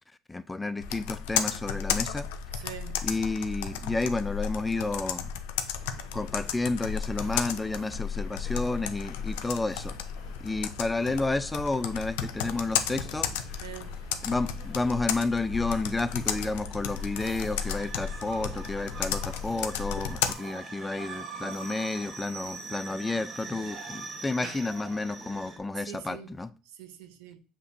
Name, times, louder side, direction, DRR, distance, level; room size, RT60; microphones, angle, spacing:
voice 1, 0.3-2.3 3.0-5.3 6.1-9.9 10.4-13.3 14.2-26.5, left 3 dB, 15° left, 0.3 m, -31 dB
Computer keyboard, 0.8-20.3, left 8 dB, 90° left, 0.4 m, -33 dB
voice 2, 2.5-3.0 13.6-13.9 25.9-26.3 26.6-27.4, right 10 dB, 85° right, 0.6 m, -44 dB
sound 1, 5.8-25.6, right 4 dB, 40° right, 1.1 m, -45 dB
6.7 x 2.9 x 2.6 m
supercardioid pair, 100°, 0 cm